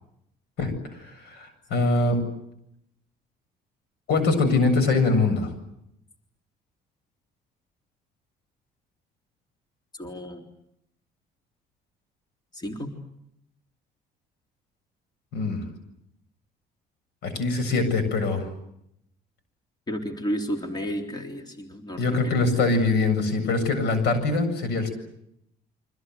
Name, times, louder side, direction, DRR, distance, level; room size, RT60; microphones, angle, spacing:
voice 1, 0.6-2.2 4.1-5.5 15.3-15.6 17.2-18.5 22.0-24.9, left 3 dB, 75° left, 10 dB, 7.8 m, -23 dB
voice 2, 9.9-10.4 12.5-12.9 19.9-22.3, equal, 25° left, 4 dB, 3.7 m, -32 dB
29.0 x 25.0 x 8.0 m, 0.77 s
cardioid pair, 110°, 17 cm